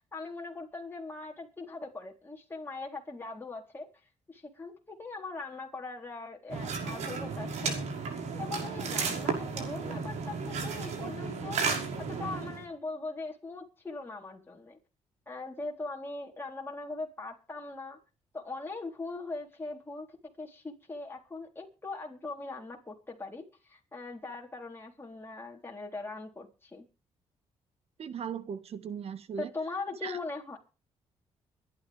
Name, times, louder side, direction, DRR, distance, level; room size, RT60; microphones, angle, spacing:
voice 1, 0.1-3.9 4.3-7.9 8.3-11.7 12.2-14.8 15.3-18.0 18.3-20.1 20.4-26.9 29.4-30.6, left 3 dB, 20° left, -1 dB, 3.9 m, -40 dB
sound 1, 6.5-12.6, right 5 dB, 80° right, 5.8 m, -34 dB
voice 2, 28.0-29.5 30.0-30.2, right 7 dB, 60° right, 12 dB, 1.6 m, -38 dB
23.5 x 11.0 x 3.6 m, 0.34 s
cardioid pair, 85°, 12 cm